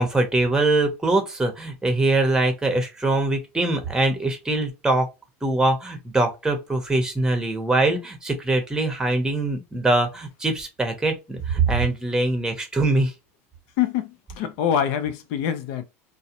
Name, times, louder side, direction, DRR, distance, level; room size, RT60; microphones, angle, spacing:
voice 1, 0.0-5.1 5.4-13.1, right 2 dB, 10° right, 0.8 m, -23 dB
voice 2, 13.8-15.8, left 9 dB, 65° left, 0.6 m, -25 dB
2.4 x 2.1 x 2.8 m
supercardioid pair, 105°, 7 cm